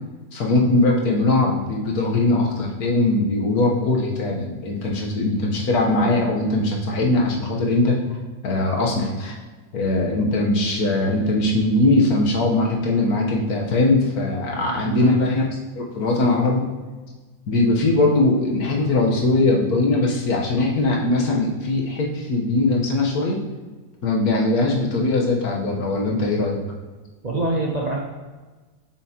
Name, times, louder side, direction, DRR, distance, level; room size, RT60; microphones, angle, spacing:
voice 1, 0.3-8.0 8.4-9.4 9.7-15.5 15.8-16.7 17.5-23.4 24.0-26.6, left 2 dB, 70° left, -1 dB, 1.6 m, -20 dB
voice 2, 14.5-15.2 27.2-28.0, right 2 dB, 35° right, -3 dB, 0.7 m, -26 dB
7.3 x 6.1 x 2.9 m, 1.3 s
omnidirectional pair, 1.7 m